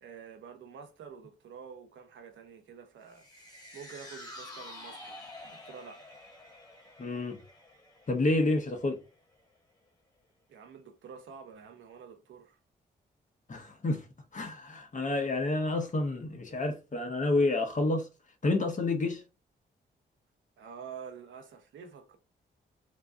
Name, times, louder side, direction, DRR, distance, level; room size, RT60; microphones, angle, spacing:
voice 1, 0.0-6.1 10.5-12.6 20.6-22.2, right 6 dB, 80° right, 0.9 m, -48 dB
sound 1, 3.1-9.5 9.9-10.0, left 1 dB, 20° left, 1.7 m, -49 dB
voice 2, 7.0-7.4 8.1-9.0 13.5-14.0 14.3-18.1 18.4-19.2, left 2 dB, 40° left, 1.2 m, -29 dB
3.1 x 2.3 x 3.8 m
cardioid pair, 60°, 19 cm